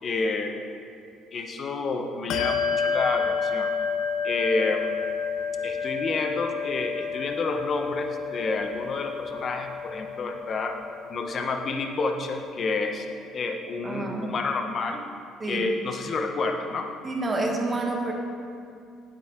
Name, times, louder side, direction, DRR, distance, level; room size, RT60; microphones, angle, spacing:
voice 1, 0.0-0.7 1.3-3.7 4.2-4.9 5.6-10.7 11.1-13.1 13.3-15.0 15.4-16.9, left 3 dB, 45° left, 5 dB, 0.9 m, -29 dB
Bell, 2.3-12.3, left 5 dB, 70° left, 0.5 m, -30 dB
voice 2, 13.8-14.3 15.4-15.7 17.0-18.1, right 2 dB, 25° right, 1 dB, 1.5 m, -28 dB
9.4 x 8.3 x 3.6 m, 2.4 s
cardioid pair, 90°, 0 cm